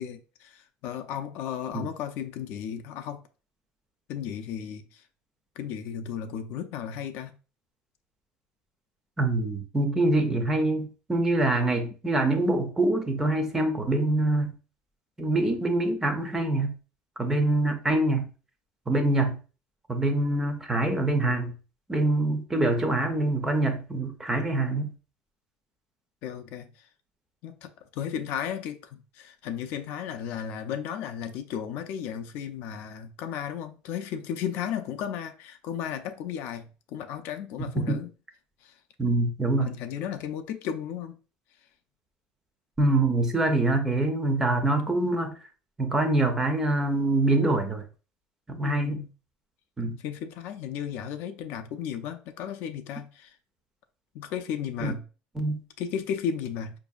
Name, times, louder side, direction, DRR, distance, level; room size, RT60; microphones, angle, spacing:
voice 1, 0.0-3.2 4.1-5.0 5.6-7.3 26.2-26.9 27.4-38.1 38.6-38.7 39.7-41.2 48.6-49.1 50.0-53.4 54.1-55.0 55.8-56.8, left 8 dB, 55° left, 0.4 m, -34 dB
voice 2, 9.2-14.5 15.2-16.7 17.2-18.3 18.9-19.4 19.9-21.5 21.9-24.9 37.8-38.0 39.0-39.7 42.8-45.3 45.8-47.8 48.5-49.0 49.8-50.0 54.8-54.9 55.4-55.6, right 2 dB, 10° right, 0.4 m, -25 dB
4.9 x 2.6 x 2.3 m
cardioid pair, 170°, 4 cm